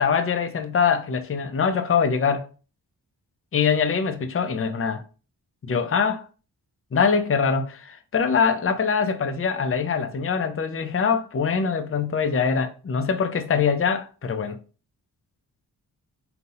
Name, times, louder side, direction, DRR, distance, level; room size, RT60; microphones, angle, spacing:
voice 1, 0.0-2.5 3.5-5.0 5.6-6.2 6.9-14.6, left 6 dB, 35° left, 0.7 m, -23 dB
3.8 x 2.9 x 3.9 m
supercardioid pair, 45°, 41 cm